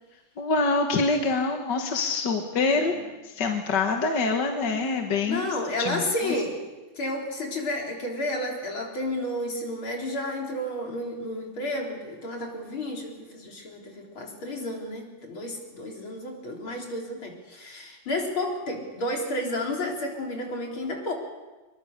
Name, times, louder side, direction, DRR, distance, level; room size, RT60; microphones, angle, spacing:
voice 1, 0.4-2.9 3.2-5.5 5.8-6.3, left 3 dB, 60° left, 3 dB, 2.1 m, -25 dB
voice 2, 2.7-3.0 5.2-6.6 7.0-21.1, left 1 dB, 80° left, 0 dB, 4.7 m, -31 dB
24.5 x 22.5 x 6.7 m, 1.2 s
omnidirectional pair, 2.2 m